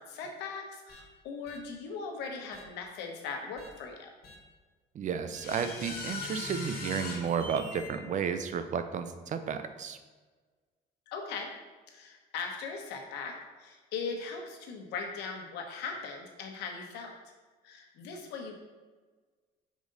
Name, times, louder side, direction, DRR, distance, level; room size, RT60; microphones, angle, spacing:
voice 1, 0.0-4.1 11.1-11.5 11.9-17.1 17.6-18.6, left 5 dB, 85° left, 2 dB, 1.1 m, -39 dB
sound 1, 0.9-1.0 1.5-1.6 2.5-2.6 3.6-3.7 4.2-4.3 5.3-7.9, left 3 dB, 65° left, 1.4 m, -40 dB
voice 2, 4.9-10.0, right 7 dB, 45° right, 9 dB, 0.5 m, -32 dB
5.1 x 3.9 x 5.2 m, 1.4 s
cardioid pair, 110°, 17 cm